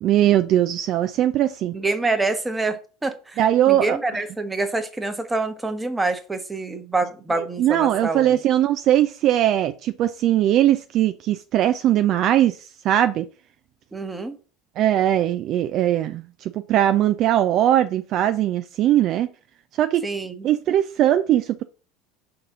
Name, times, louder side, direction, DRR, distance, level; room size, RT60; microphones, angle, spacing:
voice 1, 0.0-1.7 3.4-4.0 7.4-13.3 14.8-19.3 19.8-20.0 20.4-21.6, right 12 dB, 45° right, 0.3 m, -20 dB
voice 2, 1.7-3.4 3.7-8.4 13.9-14.4 20.0-20.5, right 3 dB, 10° right, 1.0 m, -26 dB
5.3 x 3.9 x 5.8 m
figure-of-eight pair, 70°, 0 cm